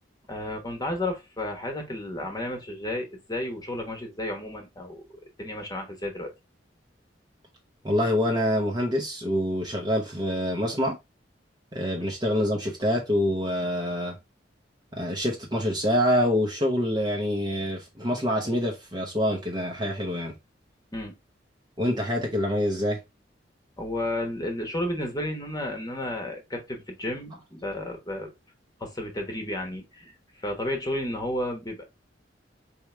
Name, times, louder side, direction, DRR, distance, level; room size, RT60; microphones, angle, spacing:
voice 1, 0.3-5.0 5.4-6.3 12.0-12.1 20.9-21.1 23.8-28.3 28.8-31.8, left 1 dB, 20° left, 1.1 m, -32 dB
voice 2, 7.8-11.0 11.7-14.1 14.9-20.3 21.8-23.0, equal, 25° right, 0.8 m, -26 dB
4.6 x 3.2 x 3.2 m
head